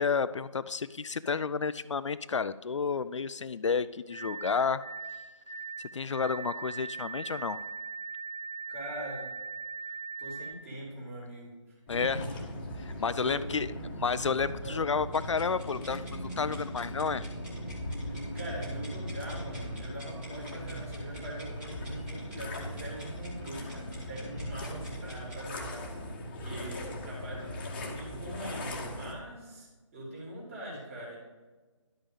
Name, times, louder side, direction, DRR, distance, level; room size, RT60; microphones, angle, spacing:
voice 1, 0.0-4.8 5.9-7.6 11.9-12.2 12.9-13.7 14.0-17.3, left 5 dB, 65° left, 14 dB, 0.4 m, -31 dB
sound 1, 4.1-10.5, right 5 dB, 90° left, 0.9 m, -40 dB
voice 2, 8.7-9.3 9.8-11.5 11.9-12.5 12.9-13.8 14.6-14.8 18.0-31.2, right 1 dB, 25° right, -4 dB, 3.1 m, -42 dB
sound 2, 11.9-29.1, equal, 20° left, 1.1 m, -39 dB
sound 3, 15.1-25.5, equal, 5° right, 1.1 m, -51 dB
11.5 x 5.6 x 5.1 m, 1.3 s
figure-of-eight pair, 160°, 16 cm